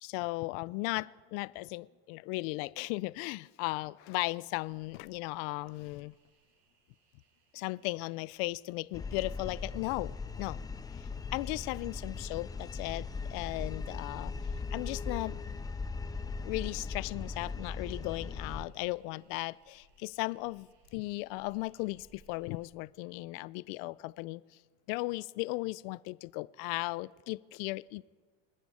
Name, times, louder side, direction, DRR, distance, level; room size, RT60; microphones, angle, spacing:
voice 1, 0.0-6.1 7.5-10.6 11.0-14.3 14.7-15.4 16.4-24.4 24.9-28.2, left 22 dB, 65° left, 20 dB, 0.5 m, -36 dB
sound 1, 4.6-22.7, right 2 dB, 85° right, 5.7 m, -69 dB
sound 2, 8.9-18.6, left 4 dB, 10° left, 0.5 m, -39 dB
28.0 x 9.4 x 4.9 m, 1.5 s
supercardioid pair, 130°, 31 cm